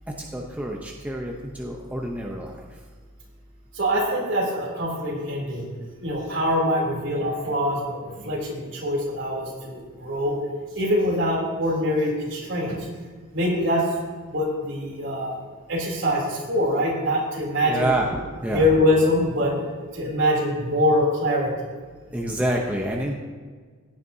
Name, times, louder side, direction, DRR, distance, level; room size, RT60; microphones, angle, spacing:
voice 1, 0.2-2.5 17.6-18.7 22.1-23.1, right 1 dB, 5° right, -1 dB, 0.7 m, -27 dB
voice 2, 3.7-5.7 6.0-10.4 10.7-12.9 13.3-13.8 14.3-15.4 15.7-17.9 18.5-19.5 19.9-21.5, left 1 dB, 55° right, -3 dB, 3.1 m, -24 dB
16.0 x 9.4 x 2.7 m, 1.5 s
head